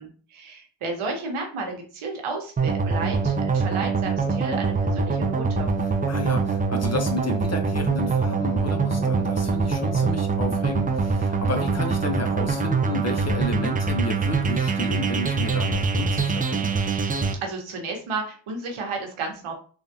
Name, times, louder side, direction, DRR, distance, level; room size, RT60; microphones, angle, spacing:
voice 1, 0.0-5.7 17.4-19.5, right 3 dB, 85° right, 2 dB, 1.0 m, -32 dB
sound 1, 2.6-17.3, right 4 dB, 20° right, 0.3 m, -24 dB
voice 2, 6.1-16.7, left 2 dB, 35° left, 5 dB, 0.6 m, -31 dB
3.4 x 2.4 x 2.6 m, 0.41 s
cardioid pair, 80°, 48 cm